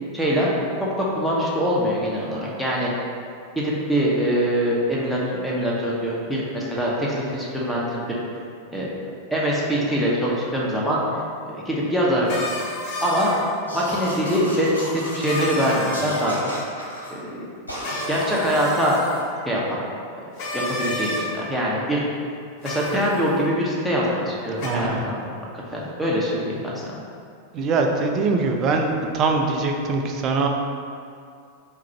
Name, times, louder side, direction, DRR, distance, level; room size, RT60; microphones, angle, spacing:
voice 1, 0.1-0.5 1.0-2.9 3.5-8.2 8.7-8.9 9.3-11.0 11.5-12.3 13.0-13.3 13.7-16.4 17.1-17.5 18.1-19.0 19.4-19.8 20.5-22.0 22.6-25.2 25.5-26.9, equal, ahead, -6 dB, 0.9 m, -23 dB
sound 1, 12.3-13.6 15.2-16.4 17.8-19.2 20.4-21.2 22.6-23.3 24.6-24.7, left 1 dB, 50° left, 1.1 m, -30 dB
sound 2, 13.7-15.6 15.9-17.1 17.7-18.5, equal, 85° right, 1.0 m, -34 dB
voice 2, 24.6-25.0 27.5-30.5, right 3 dB, 35° right, 3 dB, 0.4 m, -22 dB
4.6 x 2.5 x 4.4 m, 2.4 s
figure-of-eight pair, 90°, 0 cm